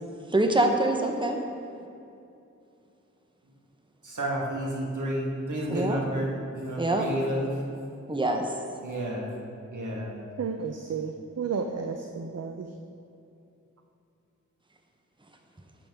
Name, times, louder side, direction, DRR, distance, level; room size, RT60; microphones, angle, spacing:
voice 1, 0.3-1.4 5.7-6.0 6.8-7.1 8.1-8.4, right 2 dB, 15° right, 3 dB, 0.9 m, -24 dB
voice 2, 4.0-7.5 8.8-9.3 9.7-10.1, right 1 dB, 80° right, -3 dB, 1.5 m, -31 dB
voice 3, 10.4-12.7, right 5 dB, 60° right, 4 dB, 0.5 m, -32 dB
8.9 x 7.0 x 3.6 m, 2.6 s
cardioid pair, 45°, 30 cm